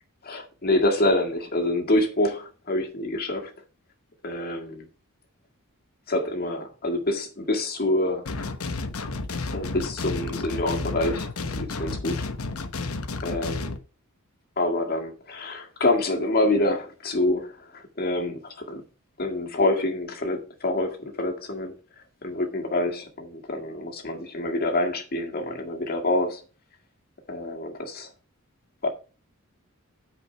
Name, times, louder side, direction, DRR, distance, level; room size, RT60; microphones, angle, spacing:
voice 1, 0.2-3.5 4.2-4.9 6.1-8.3 9.5-11.3 11.5-12.2 13.2-13.8 14.6-18.8 19.2-21.7 22.2-26.4 27.3-28.1 28.8-28.9, left 1 dB, 45° left, 2.0 m, -26 dB
sound 1, 8.3-13.8, left 3 dB, 80° left, 1.1 m, -31 dB
9.3 x 5.0 x 5.7 m
head